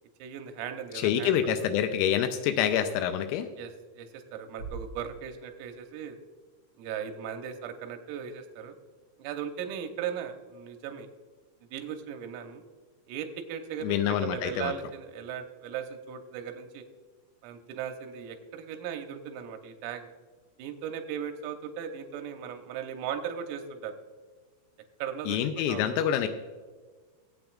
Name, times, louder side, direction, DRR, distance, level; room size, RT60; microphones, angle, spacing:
voice 1, 0.2-1.3 1.6-1.7 3.6-6.2 6.8-8.8 9.2-11.1 11.7-12.6 13.1-16.8 17.4-20.1 20.6-23.9 25.0-25.4 25.7-25.8, right 8 dB, 85° right, 5 dB, 3.6 m, -37 dB
voice 2, 0.9-3.5 13.8-14.7 25.3-26.3, left 9 dB, 85° left, 8 dB, 3.3 m, -27 dB
Bass drum, 4.6-6.3, right 4 dB, 45° left, 3.8 m, -44 dB
19.5 x 8.7 x 2.4 m, 1.4 s
omnidirectional pair, 5.9 m